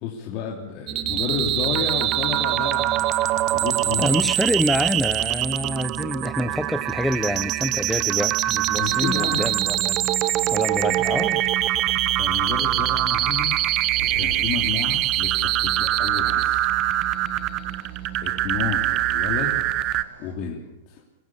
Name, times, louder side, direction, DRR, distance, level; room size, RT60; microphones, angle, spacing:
voice 1, 0.0-3.0 3.5-4.3 8.7-9.4 12.1-13.5 14.2-16.7 18.2-19.5 19.8-19.9 20.2-21.0, left 7 dB, 50° left, -1 dB, 3.2 m, -31 dB
sound 1, 0.9-20.0, right 14 dB, 40° right, 1.0 m, -23 dB
voice 2, 4.0-10.1 10.5-11.4, left 1 dB, 5° left, 13 dB, 0.8 m, -26 dB
sound 2, 12.2-20.3, right 4 dB, 85° right, 4.9 m, -45 dB
24.5 x 15.0 x 7.2 m, 0.90 s
hypercardioid pair, 105°, 0 cm